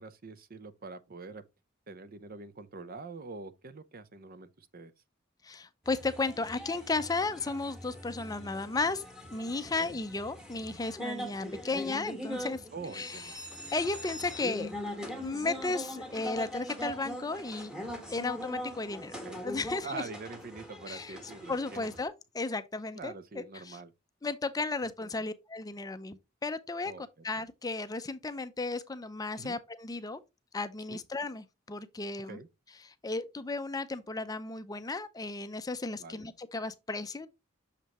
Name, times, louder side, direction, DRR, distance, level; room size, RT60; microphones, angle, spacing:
voice 1, 0.0-1.4 1.9-4.9 9.7-10.0 12.7-13.3 19.2-19.4 19.8-21.9 23.0-23.9 24.8-25.1 26.8-27.0 29.4-29.6 30.9-31.0 32.3-32.5 36.0-36.3, right 4 dB, 45° right, 0.6 m, -44 dB
voice 2, 5.4-9.0 9.3-12.6 12.9-14.7 15.2-17.7 18.1-19.1 19.4-20.0 20.9-21.2 21.5-23.8 24.2-30.2 30.5-32.4 32.8-37.3, left 3 dB, 20° left, 0.5 m, -34 dB
sound 1, 5.9-22.1, equal, 5° right, 1.2 m, -42 dB
6.5 x 5.5 x 2.9 m
head